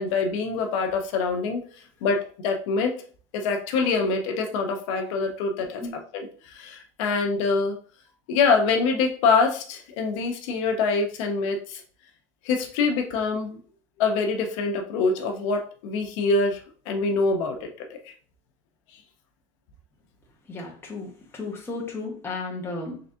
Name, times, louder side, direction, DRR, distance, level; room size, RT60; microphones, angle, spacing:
voice 1, 0.0-1.6 2.0-3.0 3.3-7.7 8.3-11.8 12.4-13.6 14.0-16.6 16.9-18.1, left 4 dB, 90° left, 3 dB, 0.8 m, -25 dB
voice 2, 5.6-5.9 20.5-23.0, left 3 dB, 15° left, -2 dB, 1.0 m, -34 dB
3.9 x 3.4 x 2.7 m, 0.42 s
cardioid pair, 150°, 16 cm